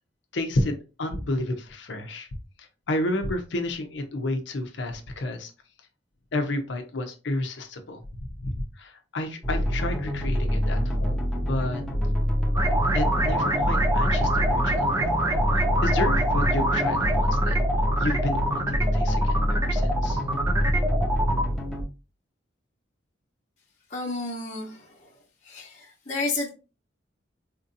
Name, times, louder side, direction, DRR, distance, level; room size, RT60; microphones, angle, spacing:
voice 1, 0.3-2.3 2.6-5.5 6.3-8.0 8.4-11.8 12.9-15.0 15.8-17.6 18.0-20.5, left 1 dB, 75° left, 0.7 m, -31 dB
sound 1, 9.4-21.8, equal, ahead, 0.9 m, -26 dB
sound 2, 12.5-21.4, right 1 dB, 20° right, 0.6 m, -26 dB
voice 2, 23.9-25.1 25.4-26.5, left 3 dB, 40° left, 1.0 m, -31 dB
4.3 x 2.7 x 2.5 m
head